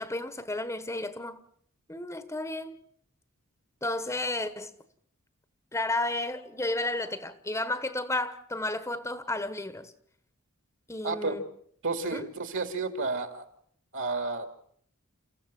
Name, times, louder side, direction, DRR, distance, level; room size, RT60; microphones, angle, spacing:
voice 1, 0.0-1.4 1.9-2.8 3.8-4.7 5.7-9.9 10.9-11.4 12.1-12.3, left 2 dB, 15° left, 1.2 m, -32 dB
voice 2, 11.0-11.4 11.8-13.4 13.9-14.5, right 3 dB, 60° right, 2.8 m, -31 dB
29.5 x 15.5 x 7.5 m
head